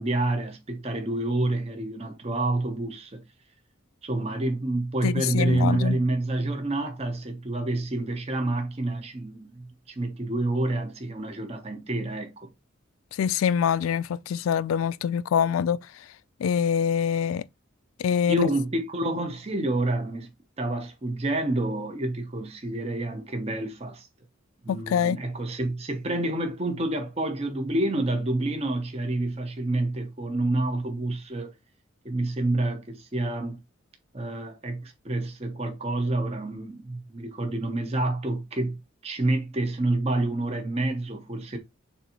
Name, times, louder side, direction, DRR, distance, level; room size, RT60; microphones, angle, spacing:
voice 1, 0.0-3.2 4.0-12.5 18.3-20.3 20.6-24.1 24.6-31.5 32.0-33.6 34.1-41.6, right 2 dB, 30° right, 0.7 m, -28 dB
voice 2, 5.0-6.0 13.2-15.8 16.4-17.4 18.0-18.5 24.7-25.2, left 7 dB, 80° left, 0.3 m, -24 dB
6.7 x 2.6 x 2.9 m
head